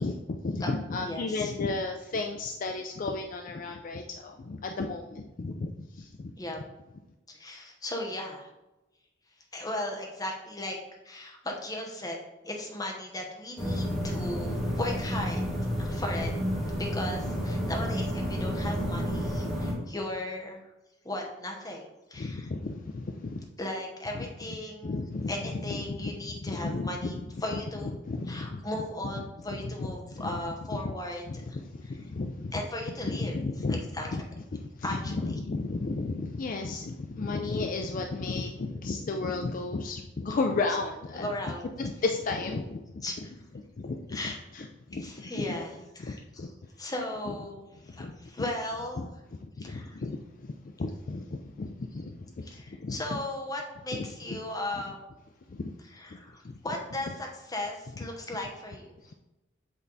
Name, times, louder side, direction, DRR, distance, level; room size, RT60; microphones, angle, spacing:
voice 1, 0.0-6.3 22.2-23.4 24.1-24.5 24.8-27.2 27.5-28.6 29.2-29.3 29.6-30.4 30.7-30.9 31.3-32.7 33.0-33.8 34.1-41.4 41.8-43.0 43.5-45.6 46.0-46.5 47.2-47.3 47.9-48.1 49.0-49.1 49.4-53.2 53.9-54.4 55.5-55.7 56.4-56.6, left 3 dB, 45° left, 3 dB, 0.4 m, -34 dB
voice 2, 1.0-1.5 6.4-6.6 7.3-8.5 9.5-10.8 11.0-12.2 12.4-15.4 15.8-16.3 16.8-20.6 21.0-21.8 22.1-22.5 23.6-24.9 25.3-27.2 27.4-27.9 28.3-31.6 32.5-33.4 34.0-34.1 34.8-35.1 41.1-41.6 43.0-43.1 44.1-44.4 45.0-46.4 46.8-49.1 49.6-50.0 52.5-55.0 56.0-58.9, left 1 dB, 20° left, 0 dB, 0.9 m, -36 dB
sound 1, 13.6-19.7, equal, ahead, 1.8 m, -30 dB
8.1 x 3.4 x 4.0 m, 0.99 s
head